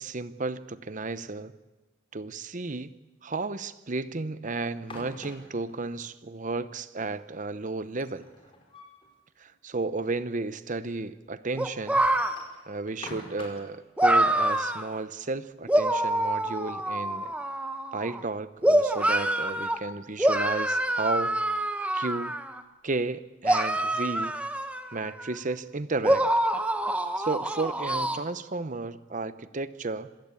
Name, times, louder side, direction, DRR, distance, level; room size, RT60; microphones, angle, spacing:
voice 1, 0.0-1.5 2.1-2.9 3.2-8.3 9.4-12.0 12.7-17.3 17.9-21.4 21.9-22.4 22.8-24.4 24.9-26.3 27.2-30.1, right 3 dB, 40° right, 13 dB, 0.8 m, -33 dB
sound 1, 4.6-5.7 7.8-9.1 9.5-9.6 9.8-9.9 10.7-10.8 12.0-13.7, left 2 dB, 25° left, 5.0 m, -45 dB
sound 2, 11.6-12.3 14.0-14.8 15.7-18.2 18.6-19.8 20.2-22.6 23.4-25.4 26.0-28.2, right 1 dB, 5° right, 1.1 m, -26 dB
27.0 x 16.5 x 8.5 m, 1.2 s
head